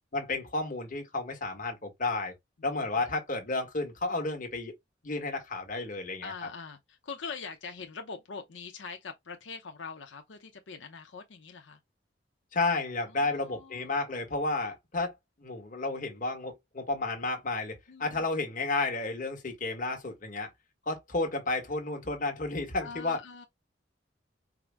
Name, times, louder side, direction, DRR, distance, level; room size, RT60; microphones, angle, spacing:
voice 1, 0.1-2.3 2.6-4.7 5.0-6.5 12.5-15.1 15.4-20.5 20.9-23.2, left 3 dB, 45° left, 1.3 m, -32 dB
voice 2, 2.6-3.1 6.2-11.8 13.1-14.0 17.9-18.3 22.8-23.5, left 5 dB, 85° left, 0.7 m, -43 dB
4.8 x 2.0 x 3.4 m
head